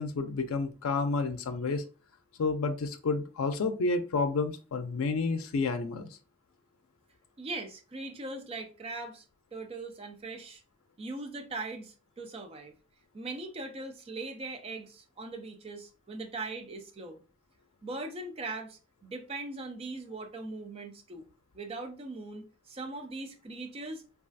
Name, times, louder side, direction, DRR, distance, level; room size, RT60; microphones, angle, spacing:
voice 1, 0.0-1.8 2.4-6.1, left 3 dB, 90° left, 0.4 m, -30 dB
voice 2, 7.4-9.2 9.5-10.6 11.0-12.7 13.1-17.2 17.8-21.3 21.5-24.0, right 2 dB, 30° right, 0.4 m, -40 dB
3.2 x 2.3 x 2.5 m
head